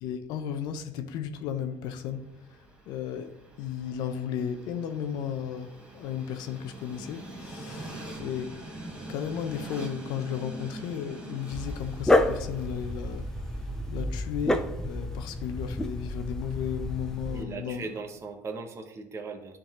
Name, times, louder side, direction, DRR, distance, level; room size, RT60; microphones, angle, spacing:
voice 1, 0.0-2.3 2.9-8.6 9.1-13.3 13.9-17.9, left 8 dB, 75° left, 0.6 m, -34 dB
Train, 1.9-18.0, right 1 dB, 15° right, 1.7 m, -45 dB
Dog, 11.5-17.4, left 1 dB, 5° left, 0.5 m, -29 dB
voice 2, 17.3-19.6, right 4 dB, 40° right, 0.9 m, -38 dB
10.0 x 3.7 x 3.0 m
supercardioid pair, 100°, 7 cm